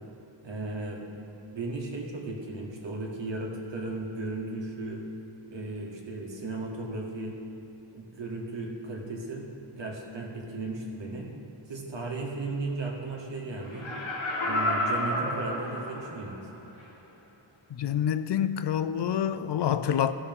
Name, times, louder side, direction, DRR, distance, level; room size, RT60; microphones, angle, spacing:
voice 1, 0.4-1.3 1.5-5.0 5.5-7.4 7.9-11.3 11.7-13.9 14.5-16.4, right 2 dB, 65° right, 1.8 m, -36 dB
Laughter, 13.7-16.3 16.8-16.9, left 1 dB, 85° left, 2.2 m, -30 dB
voice 2, 17.7-20.1, left 9 dB, 60° left, 0.5 m, -27 dB
17.0 x 6.9 x 3.6 m
wide cardioid pair, 145°, 46 cm